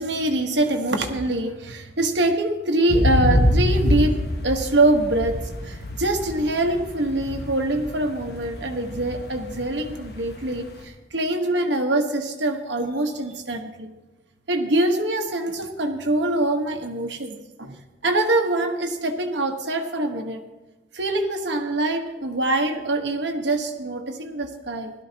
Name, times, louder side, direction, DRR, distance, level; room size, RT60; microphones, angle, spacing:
voice 1, 0.0-4.2 4.4-5.4 5.6-13.9 14.5-20.4 20.9-24.9, right 1 dB, 75° right, 4 dB, 1.3 m, -24 dB
sound 1, 2.9-10.8, equal, 60° left, 1.2 m, -25 dB
17.0 x 12.5 x 2.9 m, 1.1 s
head